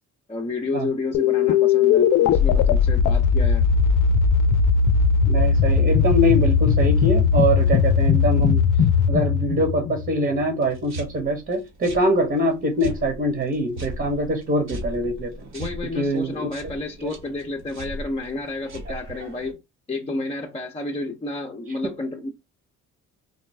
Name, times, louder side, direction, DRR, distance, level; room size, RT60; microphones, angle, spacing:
voice 1, 0.3-3.6 15.5-19.6 19.9-22.3, left 2 dB, 20° left, 0.7 m, -30 dB
sound 1, 1.1-10.5, left 6 dB, 90° left, 0.5 m, -19 dB
voice 2, 5.3-8.6 9.1-15.5 15.9-16.5 17.0-17.1, equal, 40° right, 1.3 m, -23 dB
sound 2, 10.6-19.5, right 1 dB, 65° right, 1.9 m, -38 dB
4.2 x 2.2 x 3.2 m
cardioid pair, 90°, 30 cm